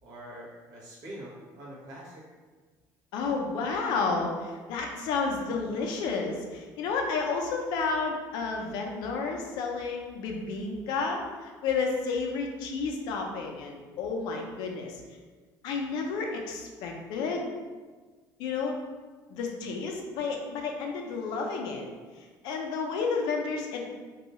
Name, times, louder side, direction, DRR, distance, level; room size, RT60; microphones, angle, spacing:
voice 1, 0.0-2.2, right 1 dB, 55° right, -6 dB, 1.0 m, -44 dB
voice 2, 3.1-15.0 15.6-17.5 18.4-18.8 19.3-21.9 22.2-23.8, left 4 dB, 80° left, 2 dB, 0.5 m, -31 dB
2.6 x 2.3 x 2.9 m, 1.4 s
cardioid pair, 140°, 7 cm